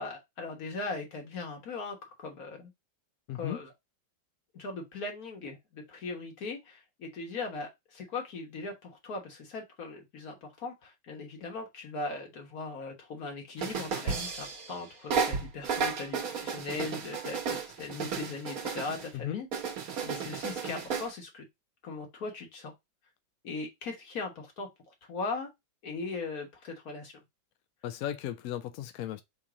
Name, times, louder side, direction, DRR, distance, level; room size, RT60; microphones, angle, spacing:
voice 1, 0.0-2.7 3.3-3.7 4.5-19.5 20.0-21.4 21.8-22.7 23.4-24.7 25.1-25.5 25.8-27.2, left 3 dB, 55° left, 1.7 m, -39 dB
voice 2, 3.3-3.6 19.2-19.4 27.8-29.2, left 11 dB, 75° left, 0.8 m, -35 dB
sound 1, 13.6-14.8 15.1-19.1 19.5-21.1, right 5 dB, 55° right, 1.3 m, -33 dB
3.8 x 2.8 x 4.8 m
omnidirectional pair, 2.0 m